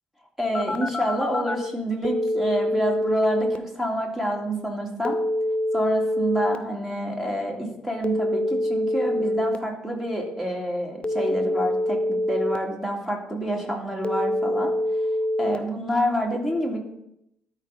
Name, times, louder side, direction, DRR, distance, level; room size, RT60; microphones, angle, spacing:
voice 1, 0.4-5.2 5.7-14.7 15.4-16.8, equal, 5° right, 0 dB, 3.0 m, -28 dB
Telephone, 0.5-1.5 2.0-3.6 5.0-6.6 8.0-9.6 11.0-12.6 14.0-15.6, left 1 dB, 25° left, 0.8 m, -25 dB
12.5 x 5.0 x 4.3 m, 0.78 s
hypercardioid pair, 50°, 5 cm